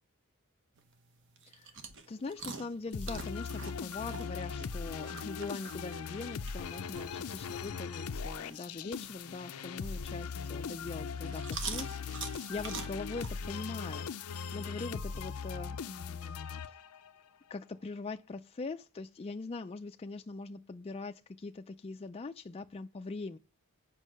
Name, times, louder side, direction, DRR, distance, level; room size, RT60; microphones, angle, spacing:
sound 1, 0.7-13.4, right 5 dB, 60° right, 1.3 m, -47 dB
voice 1, 1.5-1.8 2.1-16.4 16.7-16.8 17.5-23.4, left 3 dB, 25° left, 0.4 m, -42 dB
sound 2, 2.9-17.2, left 5 dB, 80° left, 0.5 m, -40 dB
8.3 x 5.3 x 6.5 m
head